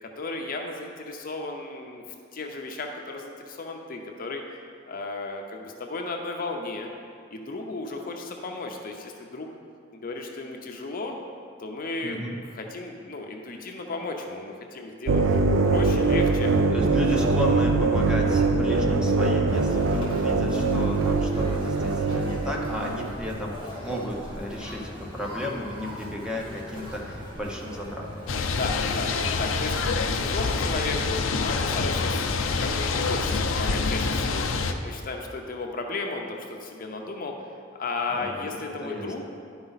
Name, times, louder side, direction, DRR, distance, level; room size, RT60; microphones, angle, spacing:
voice 1, 0.0-2.0 2.3-4.4 4.9-6.9 7.3-9.5 9.9-11.2 11.6-16.5 28.5-37.3 37.8-39.2, left 3 dB, 45° left, 2 dB, 0.7 m, -34 dB
voice 2, 12.0-12.4 16.7-28.1 29.9-30.2 38.1-39.1, left 1 dB, 5° right, -2 dB, 0.8 m, -33 dB
sound 1, 15.1-23.1, right 3 dB, 80° right, 0.5 m, -23 dB
Conversation, 19.5-28.6, equal, 25° right, 1.8 m, -39 dB
sound 2, 28.3-34.7, left 4 dB, 90° left, 0.5 m, -26 dB
11.0 x 4.8 x 4.0 m, 2.3 s
head